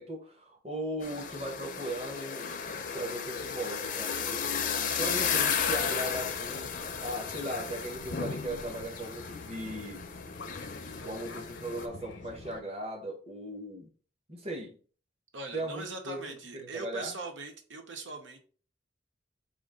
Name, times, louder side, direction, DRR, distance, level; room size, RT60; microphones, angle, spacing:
voice 1, 0.0-2.5 2.9-4.7 5.0-10.0 11.0-13.9 14.3-14.8 15.5-16.2 16.5-17.1, right 1 dB, 35° right, 1.0 m, -38 dB
sound 1, 1.0-11.9, left 7 dB, 45° left, 0.5 m, -34 dB
voice 2, 5.0-5.3 15.3-18.4, right 3 dB, 85° right, 0.7 m, -41 dB
Fixed-wing aircraft airplane, 5.6-12.6, left 3 dB, 85° left, 0.8 m, -46 dB
5.1 x 2.5 x 3.7 m
head